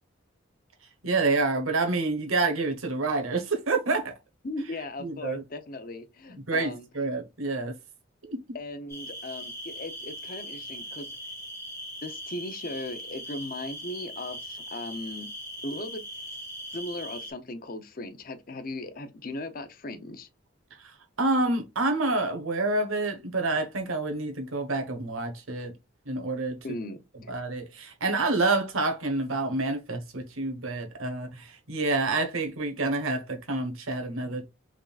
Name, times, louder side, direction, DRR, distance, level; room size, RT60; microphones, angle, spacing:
voice 1, 1.0-4.1 5.0-5.4 6.5-7.7 8.2-8.4 21.2-25.7 26.1-26.6 27.3-34.5, right 3 dB, 85° right, 1.2 m, -28 dB
voice 2, 4.4-6.9 8.5-11.1 12.0-15.3 15.6-16.0 16.7-20.3 26.6-27.3, left 2 dB, 45° left, 0.6 m, -37 dB
sound 1, 8.9-17.3, equal, 10° left, 1.4 m, -40 dB
4.7 x 3.6 x 2.4 m
head